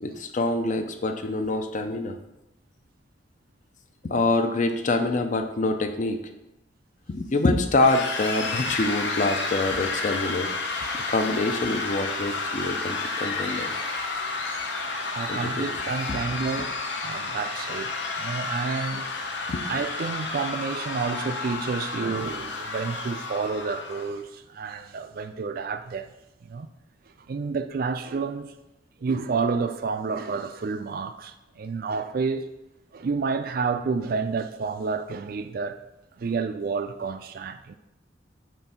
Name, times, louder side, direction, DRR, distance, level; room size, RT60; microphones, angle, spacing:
voice 1, 0.0-2.2 4.0-6.2 7.1-10.5 10.9-13.7 15.3-15.7 19.5-19.6, left 2 dB, 45° left, 0.5 m, -25 dB
sound 1, 7.8-24.1, left 3 dB, 70° left, 0.8 m, -31 dB
voice 2, 15.2-19.1 19.7-26.1 26.4-26.7 27.3-28.5 29.0-32.5 32.9-35.8 36.2-37.8, right 4 dB, 55° right, 0.4 m, -30 dB
7.5 x 2.7 x 5.6 m
head